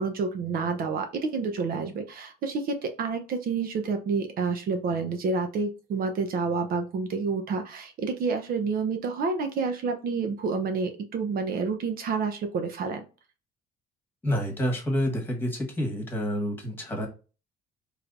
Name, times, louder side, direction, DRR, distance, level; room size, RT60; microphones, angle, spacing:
voice 1, 0.0-13.0, right 4 dB, 60° right, 5 dB, 0.8 m, -29 dB
voice 2, 14.2-17.1, equal, 15° left, 1 dB, 1.6 m, -28 dB
4.8 x 3.2 x 2.6 m, 0.34 s
cardioid pair, 110°, 17 cm